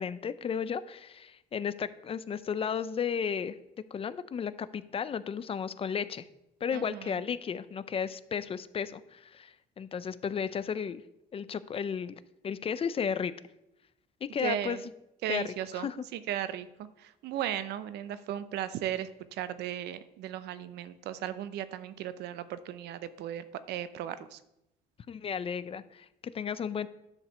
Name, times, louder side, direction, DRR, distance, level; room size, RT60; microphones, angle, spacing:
voice 1, 0.0-3.5 3.9-6.2 6.6-11.0 11.3-13.3 14.3-14.8 15.3-15.4 15.8-16.0 25.1-26.1 26.3-26.9, left 7 dB, 35° left, 14 dB, 0.5 m, -34 dB
voice 2, 6.7-7.1 14.4-14.8 15.2-24.4, right 11 dB, 80° right, 13 dB, 0.7 m, -36 dB
10.5 x 4.9 x 6.7 m, 0.87 s
cardioid pair, 110°, 17 cm